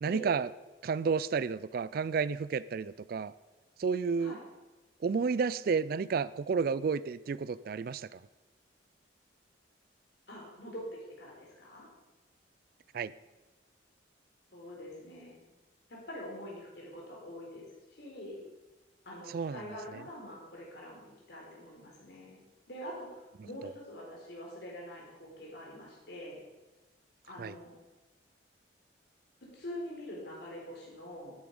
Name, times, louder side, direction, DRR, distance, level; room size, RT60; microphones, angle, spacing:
voice 1, 0.0-0.5 0.8-3.3 3.8-4.4 5.0-8.2 12.9-13.1 19.3-19.6 27.4-27.5, right 5 dB, 50° right, 18 dB, 0.3 m, -31 dB
voice 2, 10.3-11.9 14.5-15.4 15.9-17.6 17.9-18.4 19.0-22.4 22.7-26.4 27.3-27.8 29.4-31.3, equal, 60° left, -3 dB, 4.2 m, -45 dB
13.0 x 8.4 x 5.3 m, 1.2 s
head